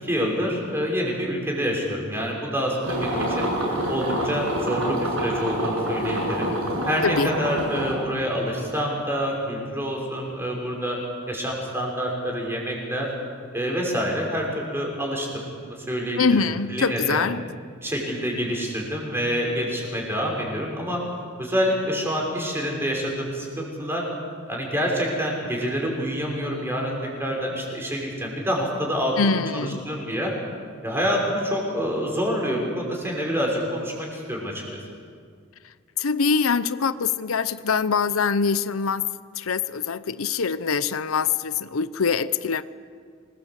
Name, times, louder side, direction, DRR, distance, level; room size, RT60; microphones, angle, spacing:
voice 1, 0.0-3.5 3.9-6.5 6.9-11.0 11.3-13.1 13.5-16.4 16.7-17.2 17.8-21.0 21.4-24.1 24.5-30.3 30.8-34.8, equal, 10° right, -1 dB, 6.1 m, -27 dB
sound 1, 2.8-7.9, right 1 dB, 85° right, 7.6 m, -27 dB
voice 2, 16.2-17.5 29.2-29.9 36.0-39.0 39.4-42.6, left 5 dB, 90° left, 14 dB, 0.8 m, -24 dB
27.0 x 20.5 x 8.2 m, 2.1 s
head